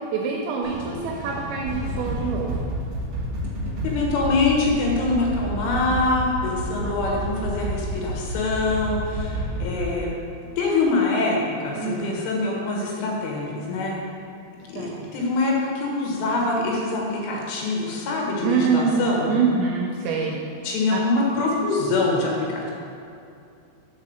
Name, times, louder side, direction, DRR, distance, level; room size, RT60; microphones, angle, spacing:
voice 1, 0.1-2.7 6.4-6.5 6.8-6.9 11.8-12.1 14.8-15.1 18.4-19.0 19.3-20.4 20.9-21.0, right 5 dB, 80° right, -1 dB, 2.6 m, -25 dB
sound 1, 0.6-4.1, left 1 dB, 55° left, 2.4 m, -39 dB
sound 2, 1.6-10.0, equal, 60° right, 1.9 m, -30 dB
voice 2, 3.8-10.1 10.6-14.0 14.7-19.4 20.6-22.7, left 3 dB, 75° left, -2 dB, 3.6 m, -24 dB
7.4 x 4.3 x 6.3 m, 2.5 s
omnidirectional pair, 5.7 m